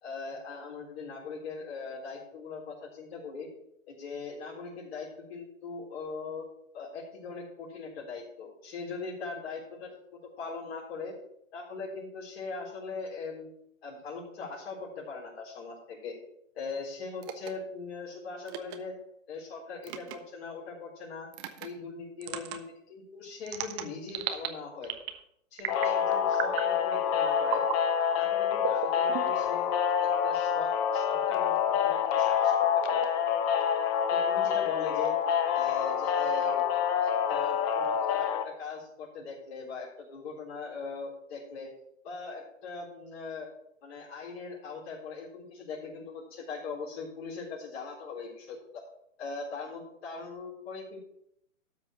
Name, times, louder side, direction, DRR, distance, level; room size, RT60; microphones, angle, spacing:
voice 1, 0.0-3.5 3.9-6.4 6.7-9.9 10.4-11.1 11.5-13.5 13.8-16.2 16.5-19.0 19.3-21.3 21.6-24.9 25.5-27.6 28.2-29.7 30.0-33.1 34.1-35.1 35.5-36.6 37.0-41.7 42.0-43.5 43.8-48.8 49.2-51.0, left 4 dB, 50° left, -6 dB, 4.0 m, -40 dB
sound 1, 17.2-17.5 18.5-18.8 19.8-20.2 21.3-21.7 22.2-22.6 23.5-24.5 24.8-25.2 25.6-26.0 26.3-26.7 27.4-27.8 28.6-29.5, right 11 dB, 20° right, 0.6 m, -35 dB
sound 2, 25.7-38.4, left 8 dB, 20° left, 0.8 m, -27 dB
13.0 x 4.8 x 6.8 m, 0.74 s
hypercardioid pair, 130°, 39 cm